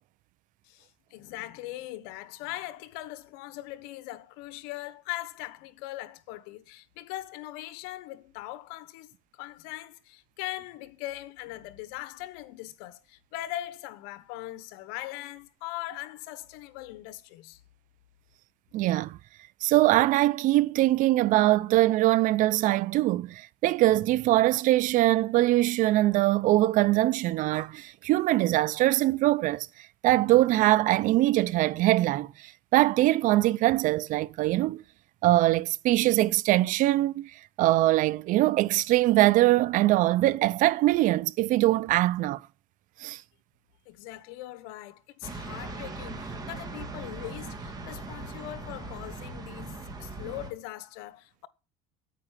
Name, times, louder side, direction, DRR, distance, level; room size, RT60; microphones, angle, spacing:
voice 1, 0.7-17.6 43.9-49.7 50.0-51.5, left 15 dB, 80° left, 1.1 m, -40 dB
voice 2, 18.7-19.2 19.6-29.7 30.0-34.8 35.2-37.3 37.6-42.4 43.0-43.2, right 16 dB, 60° right, 0.6 m, -23 dB
sound 1, 45.2-50.5, right 3 dB, 25° right, 2.9 m, -39 dB
9.1 x 9.0 x 7.4 m
cardioid pair, 125°, 16 cm